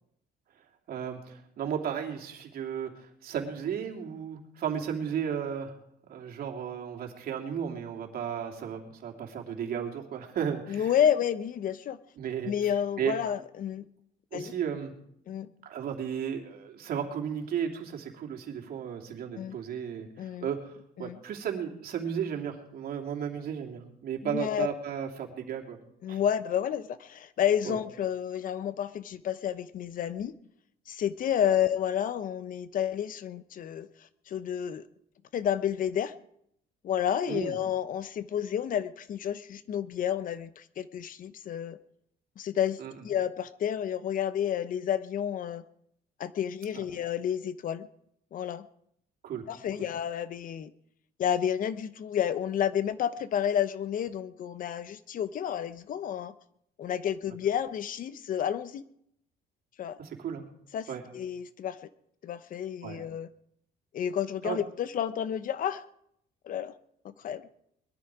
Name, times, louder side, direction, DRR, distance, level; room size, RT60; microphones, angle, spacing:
voice 1, 0.9-5.8 6.1-10.9 12.2-12.5 13.0-13.2 14.3-14.9 15.6-20.7 21.0-25.8 26.1-26.2 27.6-27.8 37.3-37.6 42.8-43.1 46.7-46.8 49.2-49.4 60.0-60.4 60.9-61.0 62.8-63.1 64.4-64.6, right 8 dB, 60° right, 2 dB, 3.0 m, -34 dB
voice 2, 10.7-12.0 12.4-13.8 14.3-14.5 15.3-15.5 19.3-19.6 20.2-20.5 21.0-21.2 24.2-24.7 26.0-30.3 30.9-33.9 34.3-34.8 35.3-36.1 36.8-41.8 42.4-45.6 46.2-47.9 48.3-48.7 49.5-50.7 51.2-56.3 56.8-58.8 59.8-60.0 60.7-60.9 61.1-61.8 62.2-63.3 63.9-65.8 66.5-66.7 67.0-67.4, left 9 dB, 55° left, 14 dB, 0.8 m, -30 dB
21.5 x 12.5 x 4.9 m, 0.72 s
cardioid pair, 110°, 17 cm